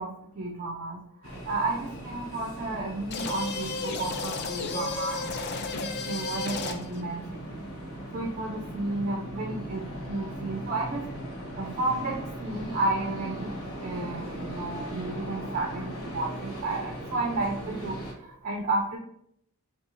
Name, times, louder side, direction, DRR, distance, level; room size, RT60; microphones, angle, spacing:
voice 1, 0.0-5.6 6.1-7.6 8.1-11.0 11.5-13.5 13.8-19.0, right 2 dB, 40° right, 1 dB, 0.4 m, -32 dB
sound 1, 1.2-18.1, right 1 dB, 75° left, 1.1 m, -39 dB
sound 2, 3.1-7.0, left 4 dB, 45° left, 0.4 m, -33 dB
5.6 x 2.4 x 2.5 m, 0.73 s
head